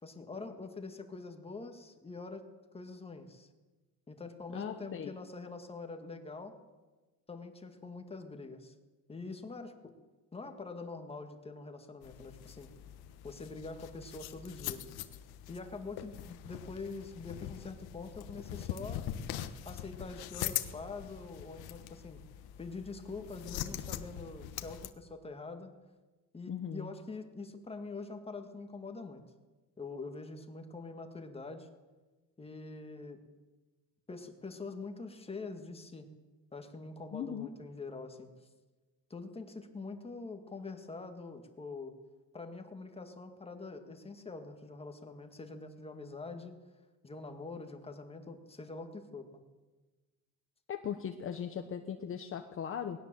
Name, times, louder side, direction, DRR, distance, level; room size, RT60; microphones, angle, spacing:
voice 1, 0.0-2.4 2.7-3.5 4.1-6.6 7.3-8.8 9.1-9.9 10.3-12.7 13.2-14.9 15.5-19.1 19.7-22.2 22.6-25.7 26.3-29.2 29.8-31.7 32.4-33.2 34.1-36.1 36.5-38.5 39.1-42.0 42.3-46.6 47.0-49.4, left 3 dB, 15° left, 5 dB, 1.9 m, -44 dB
voice 2, 4.5-5.1 26.5-26.9 37.1-37.5 50.7-53.0, left 8 dB, 35° left, 6 dB, 1.1 m, -38 dB
sound 1, 12.0-24.9, left 12 dB, 75° left, 1.4 m, -42 dB
19.5 x 17.5 x 7.6 m, 1.2 s
cardioid pair, 150°, 37 cm